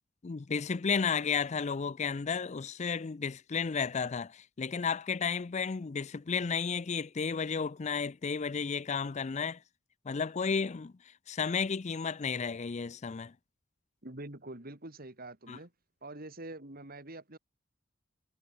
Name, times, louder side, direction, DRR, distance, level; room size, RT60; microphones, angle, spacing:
voice 1, 0.2-9.6 10.0-10.9 11.3-13.3 15.5-15.6, left 5 dB, 35° left, 0.5 m, -33 dB
voice 2, 14.0-15.7 16.0-17.4, right 2 dB, 50° right, 3.3 m, -45 dB
head